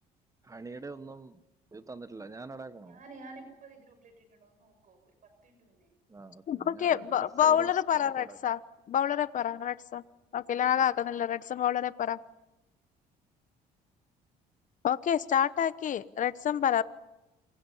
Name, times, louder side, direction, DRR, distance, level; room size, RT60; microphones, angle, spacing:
voice 1, 0.5-1.4 1.7-3.0 6.1-8.4, right 3 dB, 20° right, 12 dB, 1.2 m, -45 dB
voice 2, 2.8-5.9, right 3 dB, 50° right, 7 dB, 6.7 m, -51 dB
voice 3, 6.5-8.6 8.9-10.0 10.3-12.2 14.8-16.8, left 9 dB, 50° left, 15 dB, 1.1 m, -27 dB
28.5 x 23.5 x 5.7 m, 0.98 s
cardioid pair, 110°, 17 cm